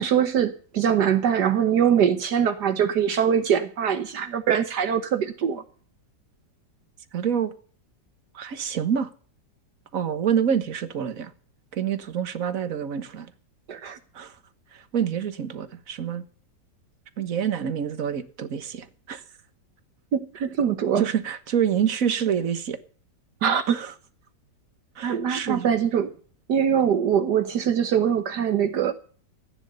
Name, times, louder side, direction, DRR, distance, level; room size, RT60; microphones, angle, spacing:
voice 1, 0.0-5.6 13.7-14.0 20.1-21.1 23.4-23.8 25.0-26.1 26.5-28.9, right 8 dB, 65° right, 1.6 m, -23 dB
voice 2, 7.1-7.5 8.3-9.1 9.9-11.3 11.7-13.3 14.1-14.3 14.7-16.2 17.2-19.2 21.0-22.8 23.7-23.9 25.0-25.7, right 8 dB, 50° right, 1.6 m, -27 dB
15.0 x 9.9 x 6.6 m
omnidirectional pair, 1.9 m